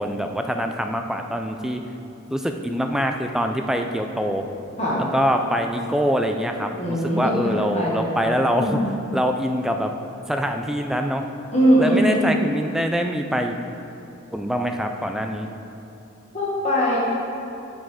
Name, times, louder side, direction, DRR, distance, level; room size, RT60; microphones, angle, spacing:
voice 1, 0.0-1.8 2.3-4.5 5.1-8.8 9.1-9.9 10.3-11.2 11.8-13.6 14.3-15.5, equal, ahead, 4 dB, 0.3 m, -24 dB
voice 2, 6.7-8.1 8.6-8.8 11.5-12.3 16.3-17.0, equal, 30° left, -6 dB, 1.7 m, -21 dB
7.3 x 6.0 x 5.0 m, 3.0 s
head